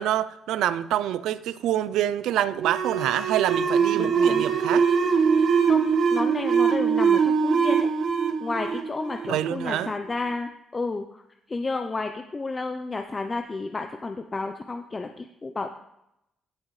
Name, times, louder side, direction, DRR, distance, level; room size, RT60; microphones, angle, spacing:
voice 1, 0.0-4.9 9.3-9.9, right 12 dB, 85° right, 0.4 m, -26 dB
sound 1, 2.6-9.8, right 6 dB, 60° right, 1.1 m, -22 dB
voice 2, 4.0-4.5 5.6-5.8 6.1-7.9 8.4-11.2 11.5-15.7, left 3 dB, 30° left, 0.7 m, -31 dB
16.5 x 6.3 x 3.2 m
cardioid pair, 90°, 0 cm